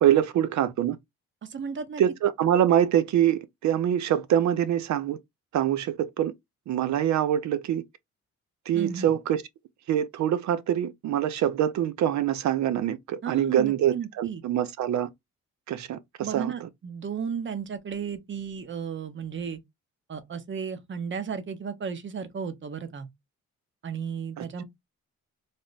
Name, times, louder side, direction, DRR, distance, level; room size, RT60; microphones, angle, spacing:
voice 1, 0.0-1.0 2.0-5.2 5.5-6.3 6.7-7.8 8.7-9.4 9.9-15.1 15.7-16.5 24.4-24.5, right 10 dB, 65° right, 0.6 m, -24 dB
voice 2, 1.4-2.0 8.7-9.1 13.2-14.4 16.2-19.6 20.1-23.1 23.8-24.6, right 6 dB, 40° right, 0.8 m, -34 dB
3.3 x 2.1 x 4.0 m
cardioid pair, 90°, 30 cm